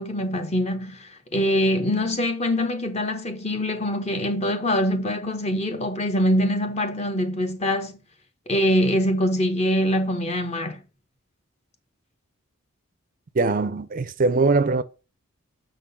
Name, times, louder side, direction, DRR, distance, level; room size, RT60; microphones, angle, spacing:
voice 1, 0.0-7.9 8.5-10.8, equal, 30° left, 1.0 m, -24 dB
voice 2, 13.3-14.8, right 3 dB, 40° right, 0.4 m, -21 dB
6.6 x 3.8 x 5.5 m
head